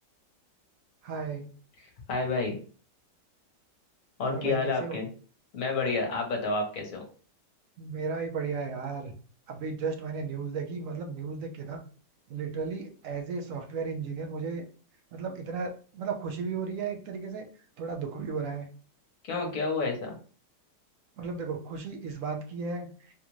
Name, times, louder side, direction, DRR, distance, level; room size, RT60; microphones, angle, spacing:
voice 1, 1.0-1.5 4.2-5.0 7.8-9.1 9.5-11.8 12.3-14.6 15.1-17.5 17.8-18.7 21.2-22.9, right 5 dB, 65° right, 4 dB, 0.8 m, -34 dB
voice 2, 2.1-2.6 4.2-5.1 5.5-7.0 19.3-20.1, left 3 dB, 55° left, 2 dB, 1.3 m, -29 dB
3.4 x 2.5 x 3.0 m, 0.40 s
omnidirectional pair, 1.9 m